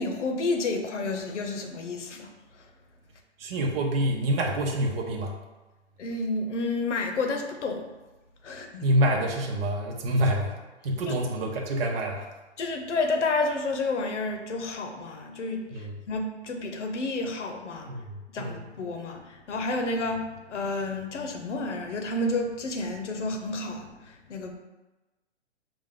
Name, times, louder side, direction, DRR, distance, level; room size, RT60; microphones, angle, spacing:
voice 1, 0.0-2.3 6.0-7.9 8.4-8.8 11.1-11.2 12.6-17.9 18.3-24.6, left 2 dB, 80° left, 4 dB, 0.9 m, -30 dB
voice 2, 3.4-5.3 8.8-10.5 10.8-12.3 15.7-15.9 17.9-18.0 18.4-18.6, right 1 dB, 55° right, 0 dB, 0.8 m, -26 dB
5.2 x 2.5 x 3.7 m, 1.1 s
hypercardioid pair, 145°, 35 cm